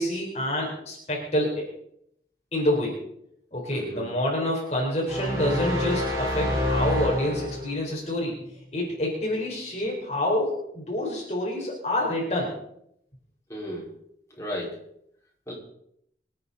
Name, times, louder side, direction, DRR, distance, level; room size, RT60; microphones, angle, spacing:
voice 1, 0.0-1.6 2.5-3.0 3.5-8.4 8.7-12.5, left 1 dB, 40° left, -3 dB, 4.1 m, -27 dB
voice 2, 3.7-4.0 13.5-13.9 14.4-14.8 15.5-15.6, equal, 15° left, -5 dB, 5.0 m, -34 dB
sound 1, 5.1-7.8, left 1 dB, 20° right, 4.6 m, -27 dB
26.5 x 9.1 x 4.2 m, 0.75 s
head